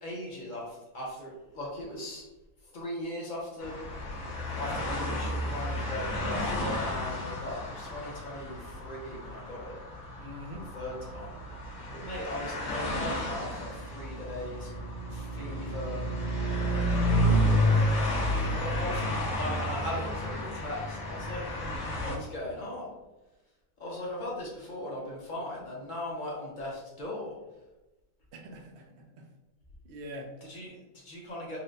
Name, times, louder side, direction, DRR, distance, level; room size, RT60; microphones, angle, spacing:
voice 1, 0.0-2.2 2.6-3.7 4.6-9.7 10.5-11.4 11.9-14.7 15.1-16.0 16.7-17.8 18.4-21.4 22.0-22.9 23.8-27.4 30.4-31.6, left 1 dB, 35° left, -4 dB, 1.0 m, -39 dB
sound 1, 3.6-22.2, equal, 65° left, 1.2 m, -31 dB
voice 2, 10.2-10.7 18.2-18.6 28.3-29.3 29.8-30.3, equal, 65° right, 2 dB, 0.7 m, -44 dB
4.2 x 2.1 x 2.6 m, 1.1 s
omnidirectional pair, 1.6 m